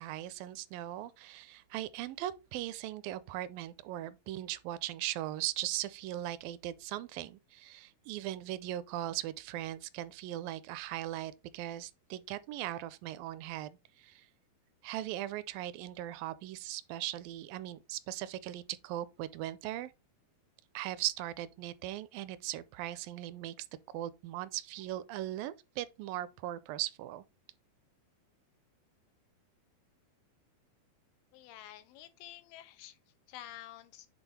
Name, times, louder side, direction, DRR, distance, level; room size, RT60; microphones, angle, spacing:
voice 1, 0.0-14.3 14.8-19.9 20.7-23.7 23.9-27.2, right 14 dB, 85° right, 2.2 m, -39 dB
voice 2, 31.3-33.0 33.3-34.1, left 13 dB, 85° left, 2.6 m, -49 dB
8.1 x 3.6 x 4.2 m
omnidirectional pair, 4.1 m